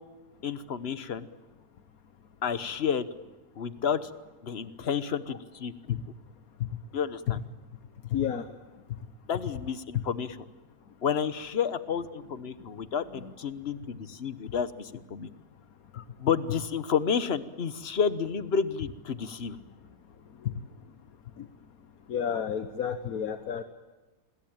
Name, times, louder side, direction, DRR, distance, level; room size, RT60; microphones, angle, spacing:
voice 1, 0.4-1.3 2.4-3.1 3.5-4.1 4.4-6.0 6.9-7.4 9.3-10.4 11.0-15.3 15.9-19.6, left 7 dB, 45° left, 13 dB, 1.3 m, -30 dB
voice 2, 8.1-8.4 13.2-13.3 22.1-23.6, left 8 dB, 80° left, 8 dB, 1.5 m, -30 dB
27.0 x 22.0 x 8.9 m, 1.2 s
omnidirectional pair, 1.5 m